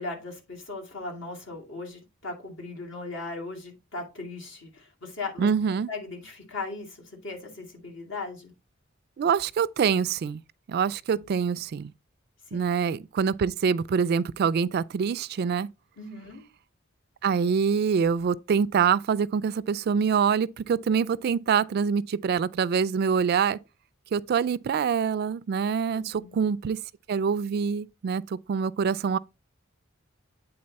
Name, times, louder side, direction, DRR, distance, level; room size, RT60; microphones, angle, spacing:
voice 1, 0.0-5.5 5.9-8.5 11.1-11.4 12.5-12.6 16.0-16.4 25.9-26.4, left 3 dB, 65° left, 2.4 m, -38 dB
voice 2, 5.4-5.9 9.2-10.4 10.7-11.9 12.5-15.7 17.2-23.6 24.1-26.8 27.1-29.2, right 6 dB, 55° right, 0.3 m, -25 dB
8.7 x 3.9 x 4.1 m
head